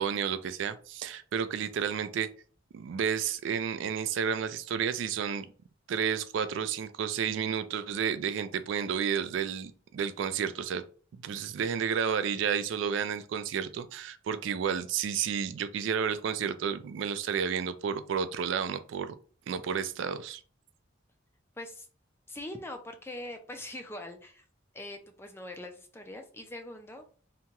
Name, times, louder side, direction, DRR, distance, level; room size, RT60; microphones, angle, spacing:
voice 1, 0.0-2.3 2.7-5.5 5.9-10.8 11.2-19.1 19.5-20.4, right 7 dB, 65° right, 0.3 m, -31 dB
voice 2, 21.6-21.9 22.3-24.4 24.7-27.0, left 1 dB, 10° left, 0.4 m, -42 dB
2.8 x 2.2 x 2.8 m
head